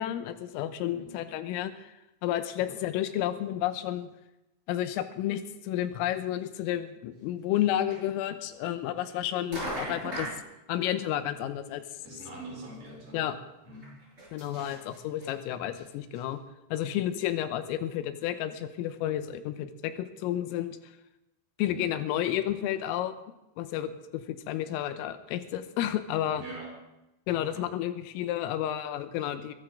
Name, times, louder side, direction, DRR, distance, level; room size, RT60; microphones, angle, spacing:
voice 1, 0.0-1.9 2.2-4.1 4.7-10.3 10.7-11.8 13.1-13.4 14.3-16.4 16.7-20.8 21.6-23.2 23.6-26.4 27.3-29.5, left 12 dB, 90° left, 10 dB, 3.5 m, -31 dB
voice 2, 0.9-1.2 2.6-2.8 12.0-13.3 13.6-14.0 21.6-21.9 26.3-26.9 27.3-27.7, right 2 dB, 35° right, -1 dB, 5.6 m, -44 dB
sound 1, 7.6-7.7 7.9-8.0 9.1-9.2 9.5-10.4 12.0-12.1 12.4-12.5 12.7-12.8 13.8-15.3 15.8-15.9 16.1-16.2, right 1 dB, 10° right, 6.9 m, -37 dB
22.0 x 13.5 x 3.8 m, 0.93 s
omnidirectional pair, 5.9 m